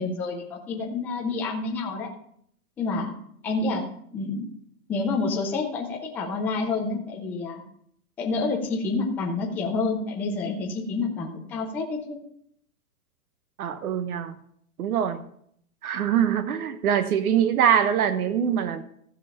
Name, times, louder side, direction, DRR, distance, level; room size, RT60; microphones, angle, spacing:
voice 1, 0.0-2.1 2.8-3.2 3.4-3.8 4.1-4.4 4.9-7.6 8.2-12.2, left 3 dB, 5° left, 0 dB, 0.4 m, -28 dB
voice 2, 13.6-14.3 14.8-15.2 15.8-18.8, right 9 dB, 65° right, 12 dB, 1.0 m, -23 dB
15.0 x 5.1 x 5.5 m, 0.68 s
hypercardioid pair, 140°, 46 cm